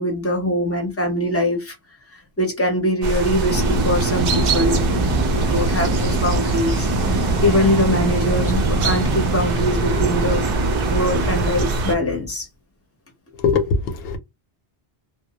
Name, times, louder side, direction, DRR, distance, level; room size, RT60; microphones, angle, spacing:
voice 1, 0.0-1.7 2.1-4.8 5.3-6.9 7.4-10.4 10.8-12.5, left 1 dB, 15° left, 0.6 m, -22 dB
sound 1, 3.0-12.0, right 2 dB, 60° right, 0.7 m, -23 dB
sound 2, 3.3-12.3, right 2 dB, 35° right, 0.3 m, -24 dB
voice 2, 13.4-14.2, left 5 dB, 65° left, 0.7 m, -20 dB
2.2 x 2.0 x 2.8 m
omnidirectional pair, 1.1 m